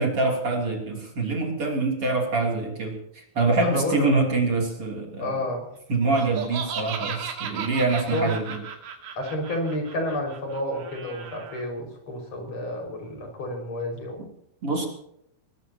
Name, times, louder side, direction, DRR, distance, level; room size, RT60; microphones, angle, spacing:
voice 1, 0.0-5.3 5.9-8.6 14.2-14.3 14.6-14.9, right 3 dB, 35° right, 1 dB, 3.4 m, -25 dB
voice 2, 3.5-4.1 5.2-5.7 8.1-8.3 9.2-14.2, left 1 dB, 35° left, 2 dB, 6.3 m, -30 dB
Laughter, 6.0-11.6, right 7 dB, 70° right, 4.5 m, -36 dB
22.0 x 20.0 x 2.9 m, 0.76 s
omnidirectional pair, 5.5 m